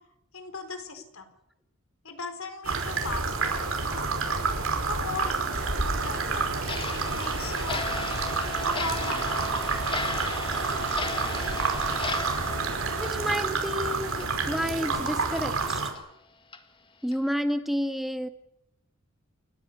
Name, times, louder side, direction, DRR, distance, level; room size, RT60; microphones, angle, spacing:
voice 1, 0.3-1.3 2.0-4.5 4.9-5.7 6.0-6.5 6.9-7.8 8.6-9.5, left 3 dB, 80° left, 8 dB, 4.2 m, -38 dB
sound 1, 2.6-15.9, right 4 dB, 85° right, 5.3 m, -29 dB
Stream, 5.5-13.3, right 3 dB, 70° right, 6.0 m, -38 dB
Clock, 6.7-13.8 14.1-14.3 14.8-14.9 15.4-15.5 15.9-16.0 16.5-16.6 17.1-17.3, left 3 dB, 25° left, 1.8 m, -36 dB
voice 2, 13.0-15.8 17.0-18.3, equal, ahead, 7 dB, 1.5 m, -30 dB
28.5 x 14.0 x 9.8 m, 0.81 s
head